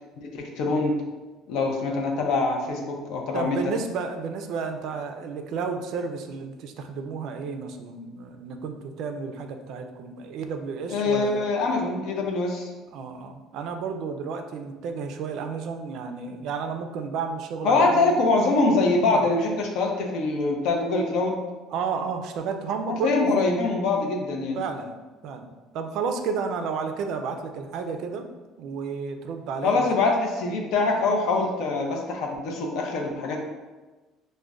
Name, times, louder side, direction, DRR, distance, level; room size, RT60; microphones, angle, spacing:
voice 1, 0.2-0.9 1.5-3.6 10.9-12.7 17.6-21.4 23.0-24.6 29.6-33.4, left 3 dB, 65° left, 1 dB, 0.5 m, -24 dB
voice 2, 3.3-11.4 12.9-18.2 19.1-19.3 21.7-23.5 24.5-24.9 25.2-25.5 25.7-28.3 28.6-29.9, right 5 dB, 60° right, 6 dB, 0.3 m, -32 dB
5.0 x 2.1 x 2.3 m, 1.2 s
cardioid pair, 160°, 0 cm